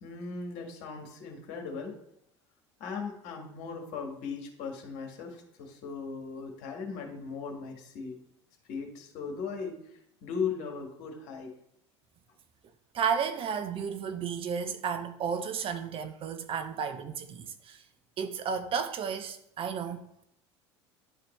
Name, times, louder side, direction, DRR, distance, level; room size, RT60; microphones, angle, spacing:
voice 1, 0.0-1.9 2.8-8.1 8.7-9.7 10.2-11.5, left 5 dB, 55° left, 1.6 m, -38 dB
voice 2, 12.9-17.8 18.2-20.0, right 6 dB, 35° right, 0.6 m, -33 dB
11.0 x 4.1 x 3.2 m
figure-of-eight pair, 70°, 15 cm